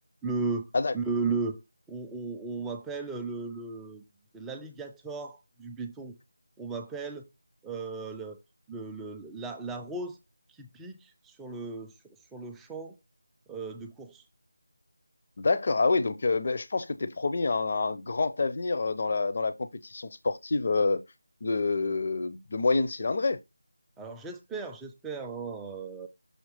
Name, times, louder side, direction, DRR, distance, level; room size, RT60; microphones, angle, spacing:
voice 1, 0.2-1.6 1.9-4.0 4.3-6.1 6.6-7.3 7.6-8.4 8.7-10.2 10.6-11.9 12.3-13.0 13.5-14.2 24.0-26.1, right 4 dB, 5° right, 0.4 m, -35 dB
voice 2, 15.4-19.5 19.8-21.0 21.4-23.4, left 3 dB, 45° left, 0.6 m, -27 dB
6.4 x 2.8 x 5.1 m
figure-of-eight pair, 170°, 0 cm